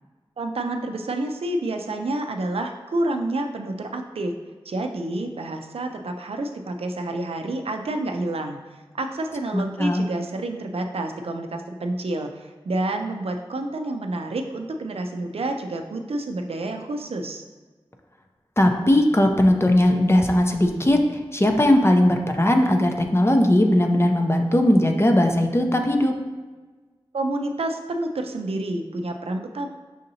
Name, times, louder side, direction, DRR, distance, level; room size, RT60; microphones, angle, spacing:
voice 1, 0.4-4.4 4.7-8.6 8.9-17.4 27.1-29.7, right 2 dB, 75° right, 4 dB, 0.4 m, -29 dB
voice 2, 9.5-10.0 18.6-21.0 21.3-26.1, left 1 dB, 25° left, 4 dB, 0.5 m, -19 dB
6.3 x 2.7 x 2.7 m, 1.3 s
wide cardioid pair, 45°, 10 cm